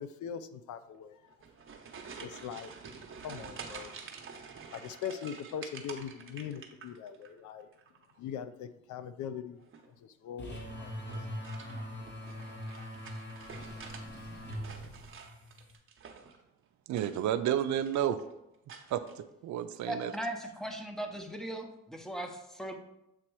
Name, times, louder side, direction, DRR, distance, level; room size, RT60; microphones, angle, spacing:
voice 1, 0.0-1.4 2.2-2.7 3.2-4.0 4.7-7.7 8.2-9.6 10.0-10.9 11.7-12.2, left 8 dB, 75° left, 11 dB, 0.5 m, -41 dB
sound 1, 1.3-7.3 7.6-8.2 9.6-10.0 11.0-14.1 14.4-16.4 16.9-17.5 17.7-18.2 18.7-19.1, right 5 dB, 45° right, 0.9 m, -48 dB
sound 2, 10.4-15.7, equal, 35° left, 1.5 m, -42 dB
Water / Sink (filling or washing), 13.4-15.1, equal, 60° left, 2.3 m, -53 dB
voice 2, 16.9-18.2 18.9-20.1, right 10 dB, 70° right, 11 dB, 0.5 m, -31 dB
voice 3, 19.9-22.8, right 1 dB, ahead, 3 dB, 0.9 m, -38 dB
7.5 x 2.9 x 4.6 m, 0.88 s
cardioid pair, 90°, 30 cm